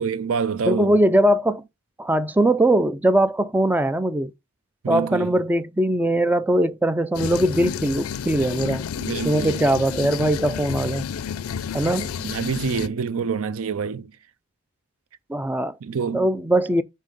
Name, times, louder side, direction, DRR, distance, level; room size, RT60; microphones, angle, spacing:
voice 1, 0.0-1.0 4.8-5.4 9.0-9.6 12.2-14.1 15.8-16.3, right 5 dB, 65° right, 0.5 m, -26 dB
voice 2, 0.7-1.6 2.0-4.3 4.9-8.8 9.2-11.0 11.7-12.1 15.3-15.8 16.1-16.8, right 1 dB, 10° right, 0.3 m, -21 dB
sound 1, 7.1-12.9, left 7 dB, 70° left, 0.4 m, -30 dB
7.3 x 2.8 x 5.3 m
head